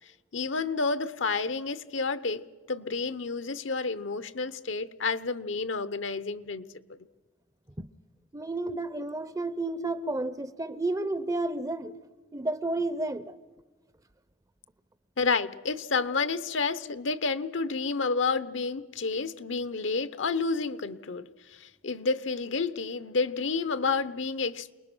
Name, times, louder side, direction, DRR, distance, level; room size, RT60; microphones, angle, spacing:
voice 1, 0.3-2.4 2.7-6.7 15.2-24.7, left 4 dB, 70° left, 0.9 m, -30 dB
voice 2, 8.3-12.0 12.3-13.4, right 2 dB, 15° right, 0.6 m, -31 dB
28.5 x 20.0 x 6.1 m
head